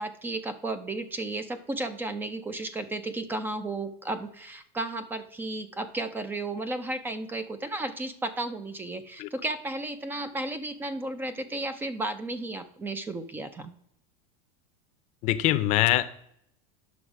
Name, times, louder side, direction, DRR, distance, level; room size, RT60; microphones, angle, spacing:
voice 1, 0.0-13.7, right 2 dB, 10° right, 12 dB, 0.5 m, -33 dB
voice 2, 15.2-16.0, left 15 dB, 40° left, 12 dB, 0.6 m, -23 dB
9.5 x 6.2 x 4.9 m, 0.72 s
supercardioid pair, 155°, 19 cm